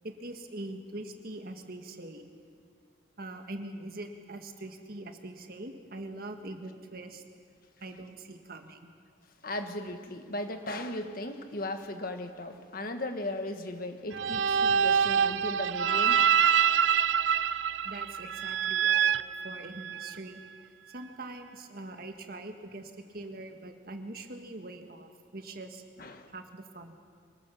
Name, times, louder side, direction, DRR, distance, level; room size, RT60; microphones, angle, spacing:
voice 1, 0.0-2.3 3.2-7.2 7.8-8.9 17.8-25.8 26.3-26.9, right 2 dB, 50° right, 5 dB, 1.6 m, -43 dB
voice 2, 9.4-16.2 26.0-26.3, left 1 dB, 50° left, 7 dB, 1.4 m, -37 dB
sound 1, 14.1-20.1, right 7 dB, 75° right, 0.5 m, -26 dB
24.0 x 18.5 x 7.0 m, 2.1 s
head